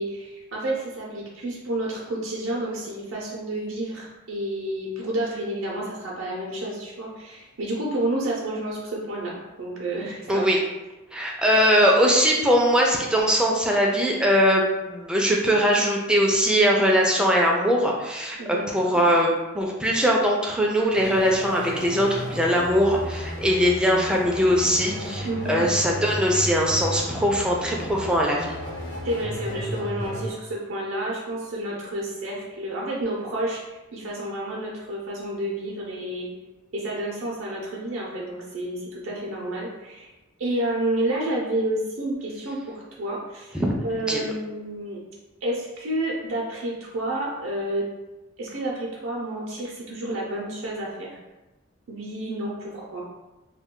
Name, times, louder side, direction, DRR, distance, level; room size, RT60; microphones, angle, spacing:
voice 1, 0.0-10.5 18.4-18.9 25.2-25.6 29.0-36.3 36.7-40.1 40.4-43.6 43.8-45.0 45.4-47.9 48.4-51.1 51.9-53.0, right 1 dB, 75° right, -4 dB, 0.5 m, -30 dB
voice 2, 10.3-10.6 11.1-14.6 14.9-28.5 43.5-43.8 44.1-44.3, equal, 5° right, -1 dB, 0.3 m, -21 dB
sound 1, 20.9-30.3, left 1 dB, 60° left, 0.9 m, -34 dB
2.2 x 2.2 x 3.6 m, 1.1 s
head